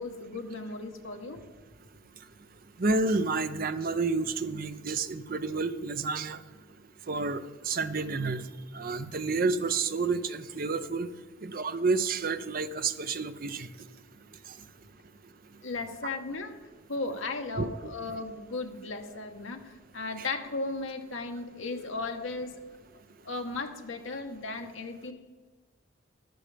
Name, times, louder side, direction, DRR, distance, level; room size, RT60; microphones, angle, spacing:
voice 1, 0.0-1.4 15.6-16.6 16.9-22.5 23.2-25.1, left 3 dB, 70° left, 4 dB, 1.2 m, -36 dB
voice 2, 2.8-6.4 7.1-8.5 8.7-11.1 11.4-13.7 17.6-17.9, right 3 dB, 45° right, 11 dB, 0.6 m, -30 dB
14.0 x 11.5 x 3.4 m, 1.3 s
head